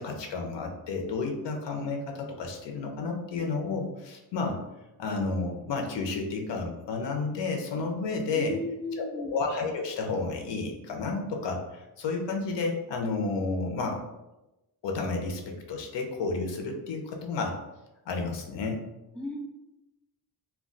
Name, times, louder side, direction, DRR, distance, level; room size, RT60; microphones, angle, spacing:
voice 1, 0.0-4.6 5.0-8.6 9.0-14.0 14.8-17.6 18.1-18.8, left 3 dB, 85° left, 3 dB, 0.6 m, -31 dB
voice 2, 8.3-9.3 19.1-19.4, left 2 dB, 5° left, -1 dB, 0.4 m, -35 dB
2.2 x 2.2 x 3.7 m, 0.98 s
wide cardioid pair, 165°, 42 cm